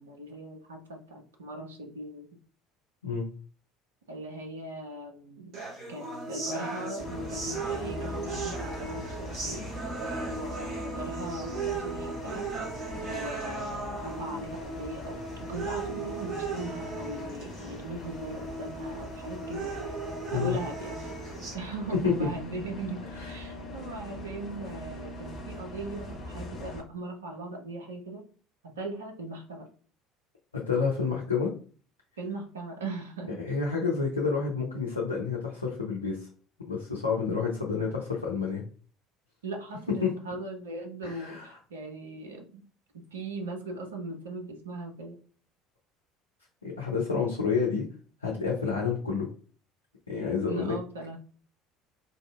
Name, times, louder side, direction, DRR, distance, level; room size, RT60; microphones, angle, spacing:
voice 1, 0.0-2.3 4.1-5.6 5.9-9.7 10.3-12.5 13.0-20.0 20.3-21.0 21.5-28.3 28.6-29.7 32.2-33.4 39.4-42.6 42.9-45.2 50.5-51.2, right 2 dB, 75° right, 3 dB, 0.5 m, -39 dB
sound 1, 5.5-21.5, right 3 dB, 45° right, 1.6 m, -37 dB
Bus, 7.0-26.8, left 1 dB, 45° left, 1.1 m, -41 dB
voice 2, 30.5-31.5 33.4-36.3 36.7-38.6 40.0-40.1 41.0-41.5 46.6-47.9 48.2-49.3 50.1-50.8, left 5 dB, 85° left, -3 dB, 0.5 m, -29 dB
4.0 x 2.6 x 2.3 m, 0.41 s
figure-of-eight pair, 60°, 0 cm